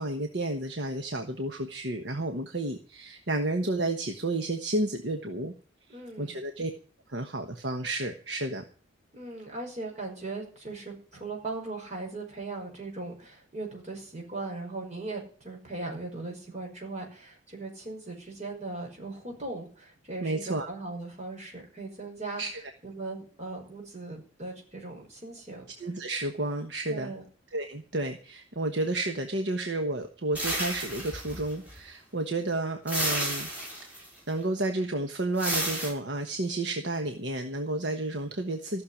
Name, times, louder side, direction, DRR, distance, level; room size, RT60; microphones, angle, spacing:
voice 1, 0.0-5.5 6.2-6.7 7.1-8.6 20.2-20.7 22.4-22.5 25.8-27.1 27.5-33.5 33.8-34.0 34.3-38.8, right 2 dB, 60° right, 5 dB, 1.3 m, -31 dB
voice 2, 5.9-6.4 9.1-25.6 26.9-27.3, right 3 dB, 35° right, 1 dB, 5.6 m, -39 dB
sound 1, 30.3-31.8 32.9-34.1 35.4-35.9, equal, 5° right, 6.7 m, -31 dB
15.0 x 6.7 x 9.9 m, 0.42 s
head